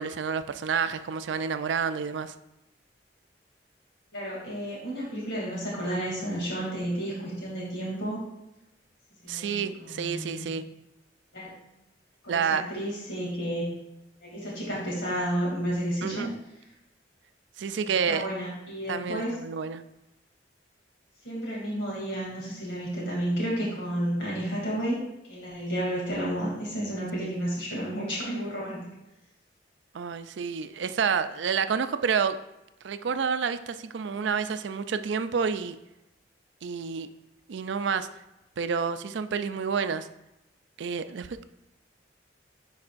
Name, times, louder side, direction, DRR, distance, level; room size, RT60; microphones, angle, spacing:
voice 1, 0.0-2.3 9.3-10.6 12.3-12.6 16.0-16.3 17.6-18.3 18.9-19.8 29.9-32.4 32.8-35.8 36.6-37.1 37.5-38.1 38.6-40.1 40.8-41.5, right 6 dB, 75° right, 11 dB, 0.4 m, -29 dB
voice 2, 4.1-8.2 9.2-10.5 11.3-11.6 12.2-13.7 14.2-16.3 17.7-19.3 21.2-25.0 25.3-28.9, right 1 dB, 90° left, -5 dB, 2.6 m, -31 dB
10.5 x 4.8 x 2.5 m, 0.92 s
head